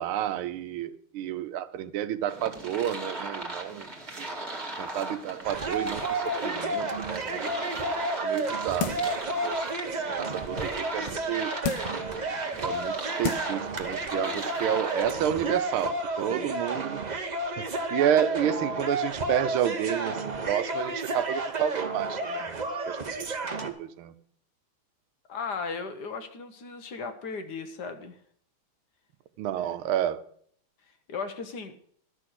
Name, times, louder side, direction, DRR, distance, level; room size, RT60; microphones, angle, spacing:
voice 1, 0.0-3.9 4.2-4.4 4.8-7.7 8.2-9.6 9.8-11.5 12.6-17.0 17.6-17.7 17.9-24.1 29.4-30.2, right 10 dB, 85° right, 13 dB, 1.5 m, -30 dB
sound 1, 2.3-15.3, right 2 dB, 20° right, 1.7 m, -38 dB
sound 2, 5.4-23.7, right 2 dB, 45° right, 0.5 m, -31 dB
sound 3, 8.8-9.2 9.7-9.8 11.6-12.1 12.8-12.9 13.2-13.6 14.0-14.1, left 9 dB, 85° left, 1.6 m, -32 dB
voice 2, 25.3-28.2 31.1-31.7, left 5 dB, 60° left, 8 dB, 1.4 m, -36 dB
12.0 x 6.3 x 7.7 m, 0.63 s
omnidirectional pair, 2.3 m